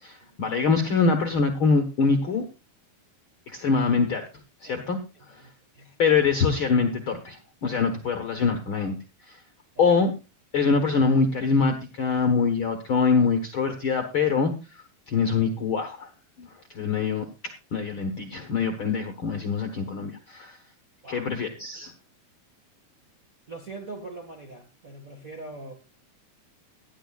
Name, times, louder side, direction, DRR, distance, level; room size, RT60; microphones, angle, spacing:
voice 1, 0.0-2.4 3.5-4.2 4.6-5.0 6.0-8.9 9.3-9.4 9.8-10.1 10.5-16.1 16.4-16.5 16.7-20.6 21.1-21.9, left 5 dB, 60° left, 1.4 m, -24 dB
voice 2, 23.5-25.7, right 2 dB, 40° right, 1.2 m, -41 dB
17.5 x 12.0 x 2.4 m
omnidirectional pair, 4.2 m